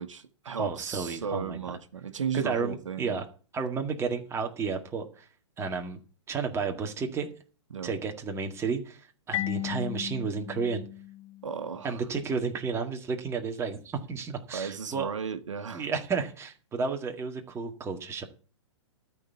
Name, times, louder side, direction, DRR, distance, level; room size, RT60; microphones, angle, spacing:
voice 1, 0.0-3.2 7.7-7.9 11.4-12.0 14.5-15.9, right 6 dB, 80° right, 1.3 m, -35 dB
voice 2, 0.6-1.6 2.3-3.2 3.5-5.3 5.6-6.0 6.3-7.3 7.8-10.8 11.8-15.1 15.7-18.2, right 5 dB, 15° right, 1.9 m, -32 dB
Marimba xylophone, 9.3-12.0, left 15 dB, 30° left, 0.6 m, -36 dB
13.5 x 4.6 x 8.4 m
hypercardioid pair, 125°, 16 cm